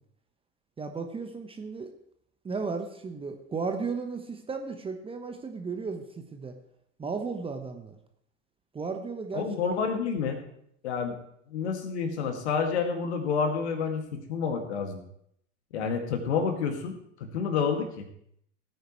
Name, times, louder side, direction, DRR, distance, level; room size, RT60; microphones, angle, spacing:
voice 1, 0.8-1.9 2.4-6.0 6.3-6.5 7.0-8.0 8.7-9.5, right 4 dB, 15° right, 5 dB, 1.1 m, -34 dB
voice 2, 9.3-10.4 10.8-11.1 11.5-15.0 15.7-18.1, left 6 dB, 60° left, 5 dB, 2.2 m, -29 dB
17.5 x 9.3 x 3.1 m, 0.72 s
figure-of-eight pair, 90°, 37 cm